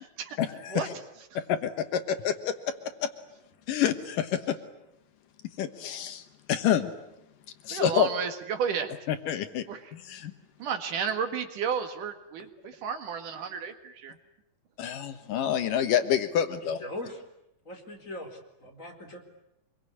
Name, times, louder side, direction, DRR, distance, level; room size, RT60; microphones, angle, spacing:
voice 1, 0.4-0.9 1.5-2.5 3.0-3.1 3.7-4.6 5.6-6.2 6.5-6.9 7.7-8.1 9.1-9.6 10.1-10.3 14.8-16.8, left 9 dB, 75° left, 10 dB, 2.8 m, -27 dB
voice 2, 7.7-8.9 9.7-9.9 10.6-14.2, right 7 dB, 70° right, 8 dB, 3.2 m, -32 dB
voice 3, 16.6-17.2 17.6-19.2, left 1 dB, 20° left, 2 dB, 4.2 m, -40 dB
25.5 x 22.5 x 9.8 m, 0.83 s
omnidirectional pair, 4.0 m